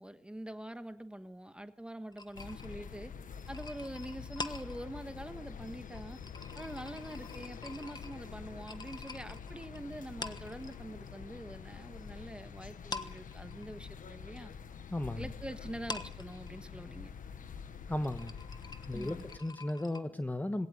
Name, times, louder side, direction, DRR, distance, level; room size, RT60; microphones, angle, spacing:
voice 1, 0.0-3.1 3.5-6.2 6.5-14.5 15.2-17.1 18.9-19.3, right 1 dB, 5° right, 9 dB, 1.4 m, -45 dB
sound 1, 2.1-11.1 11.4-12.4 12.7-20.0, left 3 dB, 30° left, 1.2 m, -47 dB
sound 2, 2.3-19.4, left 6 dB, 70° left, 1.3 m, -47 dB
voice 2, 14.9-15.3 17.9-18.3 18.8-20.7, left 1 dB, 10° left, 9 dB, 1.1 m, -35 dB
20.0 x 17.5 x 9.6 m, 0.76 s
wide cardioid pair, 120°, 14 cm